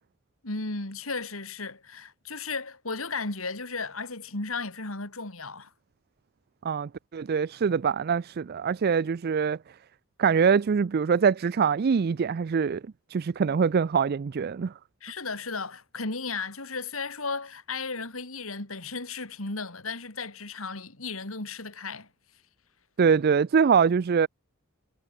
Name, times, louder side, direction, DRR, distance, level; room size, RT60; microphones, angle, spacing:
voice 1, 0.4-5.7 15.0-22.1, left 4 dB, 85° left, 3.7 m, -35 dB
voice 2, 6.6-9.6 10.2-12.8 13.1-14.7 23.0-24.3, right 6 dB, 50° right, 0.4 m, -24 dB
head